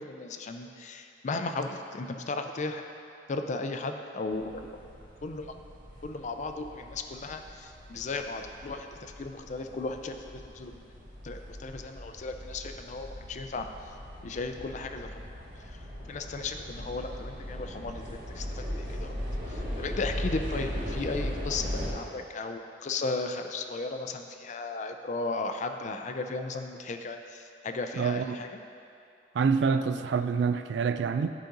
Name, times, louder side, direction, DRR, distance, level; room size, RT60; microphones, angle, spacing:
voice 1, 0.0-2.9 3.3-4.7 5.2-5.5 6.0-10.8 11.2-13.7 14.2-15.3 16.1-19.2 19.5-28.6, left 3 dB, 40° left, 6 dB, 0.4 m, -35 dB
sound 1, 4.3-21.9, equal, 50° right, 1.9 m, -39 dB
voice 2, 28.0-28.4 29.3-31.3, right 5 dB, 70° right, 10 dB, 0.3 m, -26 dB
10.5 x 5.1 x 3.9 m, 2.6 s
head